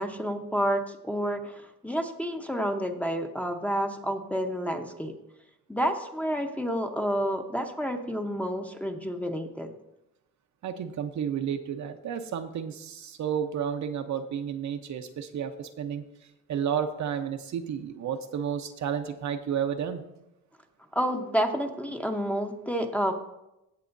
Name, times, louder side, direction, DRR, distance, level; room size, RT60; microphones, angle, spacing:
voice 1, 0.0-5.1 5.7-9.7 20.9-23.1, equal, 5° left, 3 dB, 0.9 m, -29 dB
voice 2, 10.6-16.0 16.5-20.1, right 8 dB, 50° right, 6 dB, 0.9 m, -31 dB
16.5 x 6.8 x 2.6 m, 0.88 s
cardioid pair, 105°, 35 cm